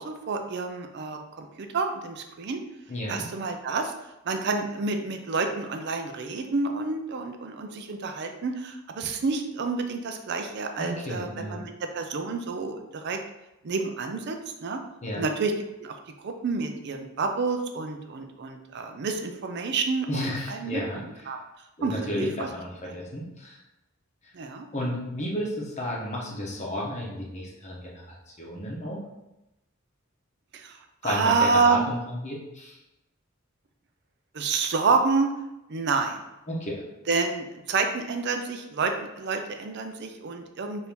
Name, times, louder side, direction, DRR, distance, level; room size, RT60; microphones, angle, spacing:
voice 1, 0.0-2.6 3.1-3.9 4.2-13.2 13.6-14.4 14.6-14.8 15.1-15.5 15.8-15.9 16.2-20.8 21.3-21.4 21.8-22.5 22.9-23.0 24.3-24.7 30.5-31.9 34.3-35.3 35.7-36.2 37.1-40.9, right 4 dB, 55° right, 5 dB, 0.5 m, -28 dB
voice 2, 2.9-3.3 10.8-11.7 15.0-15.2 20.1-21.0 21.8-23.6 24.7-29.0 31.0-32.8 36.5-36.8, left 1 dB, 35° left, -3 dB, 0.9 m, -32 dB
4.4 x 2.7 x 3.5 m, 0.93 s
head